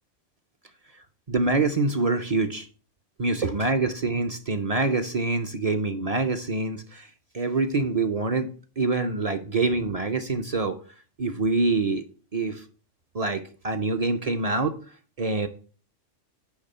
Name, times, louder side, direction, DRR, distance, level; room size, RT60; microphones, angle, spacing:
voice 1, 1.3-2.7 3.2-7.1 7.3-10.8 11.2-12.0 12.3-12.6 13.1-14.7 15.2-15.5, right 3 dB, 45° right, 7 dB, 0.5 m, -25 dB
9.6 x 3.5 x 6.6 m, 0.40 s
omnidirectional pair, 1.3 m